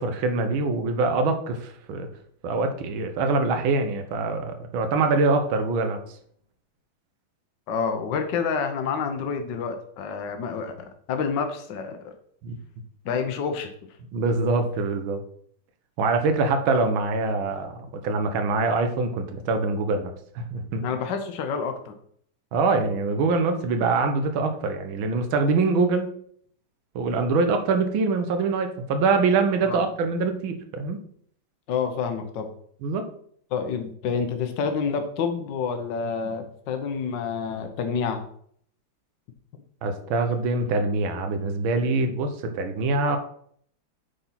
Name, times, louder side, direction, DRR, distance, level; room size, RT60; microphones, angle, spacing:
voice 1, 0.0-2.1 2.4-6.0 12.4-12.6 14.1-15.2 16.0-20.8 22.5-26.1 27.0-31.0 32.8-33.1 39.8-43.2, right 3 dB, 85° right, 7 dB, 1.8 m, -24 dB
voice 2, 7.7-12.1 13.0-13.7 20.8-21.9 29.6-29.8 31.7-32.5 33.5-38.2, left 6 dB, 65° left, 6 dB, 1.6 m, -28 dB
8.3 x 4.4 x 5.8 m, 0.63 s
omnidirectional pair, 2.2 m